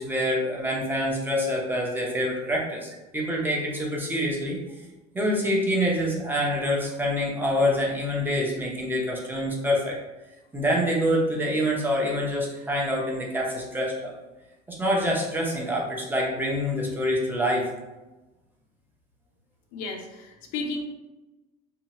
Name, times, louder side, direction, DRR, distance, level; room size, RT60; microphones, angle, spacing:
voice 1, 0.0-4.6 5.1-10.0 10.5-14.1 14.7-17.7, equal, 10° right, -3 dB, 0.7 m, -26 dB
voice 2, 19.7-20.8, left 3 dB, 85° left, 2 dB, 0.6 m, -33 dB
2.7 x 2.2 x 2.9 m, 1.1 s
supercardioid pair, 110°, 21 cm